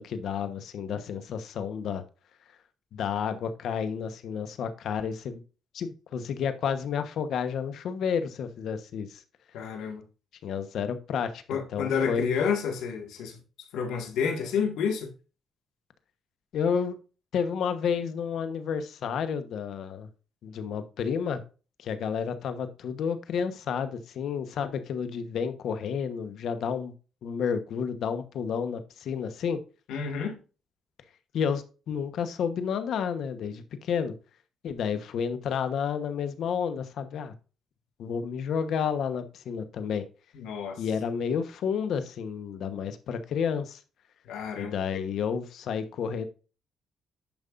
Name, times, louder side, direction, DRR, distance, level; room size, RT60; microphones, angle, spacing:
voice 1, 0.0-2.0 2.9-5.4 5.7-9.2 10.4-12.3 16.5-17.0 17.3-20.1 20.4-21.4 21.8-26.9 27.2-29.6 31.3-34.1 34.6-37.3 38.0-40.0 40.8-43.8 44.6-46.3, left 7 dB, 70° left, 1.1 m, -31 dB
voice 2, 9.5-10.0 11.5-13.4 13.7-15.1 29.9-30.4 40.3-40.8 44.3-44.8, left 6 dB, 90° left, 1.8 m, -29 dB
10.5 x 5.4 x 2.5 m
cardioid pair, 90°, 0 cm